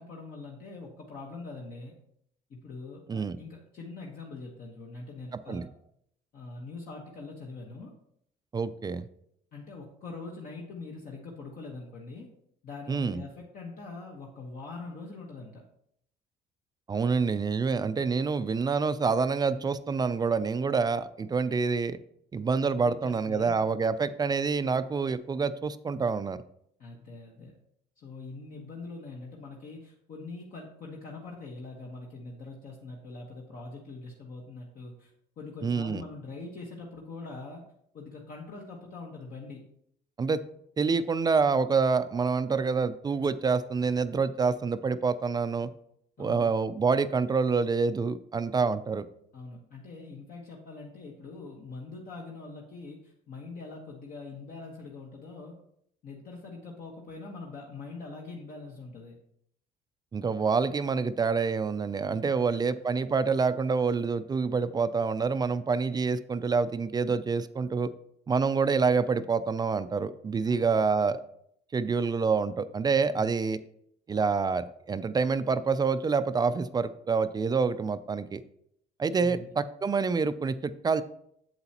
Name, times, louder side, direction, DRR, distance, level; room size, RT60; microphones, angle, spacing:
voice 1, 0.0-1.9 2.5-5.6 6.3-7.9 9.5-12.3 12.6-15.6 22.8-23.5 26.8-27.5 28.0-37.6 37.9-39.6 46.2-46.5 49.3-55.6 56.0-59.2 62.4-62.8 70.4-70.8 73.1-73.3 79.2-79.5, left 3 dB, 55° left, -2 dB, 1.3 m, -43 dB
voice 2, 8.5-9.1 12.9-13.2 16.9-22.0 22.3-26.4 35.6-36.0 40.2-40.4 40.8-45.7 46.2-49.1 60.1-67.9 68.3-71.2 71.7-73.6 74.1-78.4 79.0-81.0, right 5 dB, 25° right, 12 dB, 0.4 m, -27 dB
8.0 x 7.8 x 2.9 m, 0.71 s
cardioid pair, 110°, 17 cm